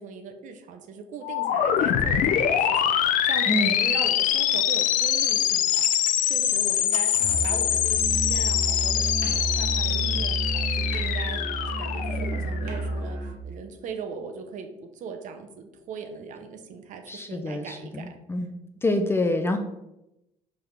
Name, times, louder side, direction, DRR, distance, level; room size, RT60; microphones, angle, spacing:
voice 1, 0.0-5.8 6.2-11.5 11.8-18.5, right 5 dB, 60° right, 6 dB, 0.9 m, -39 dB
sound 1, 1.2-12.9, left 10 dB, 65° left, 0.6 m, -24 dB
Musical instrument, 7.1-13.5, right 2 dB, 75° right, 1.5 m, -30 dB
voice 2, 17.1-18.6 18.8-19.6, left 1 dB, 15° left, 6 dB, 0.5 m, -26 dB
5.5 x 3.6 x 5.8 m, 0.90 s
cardioid pair, 155°, 15 cm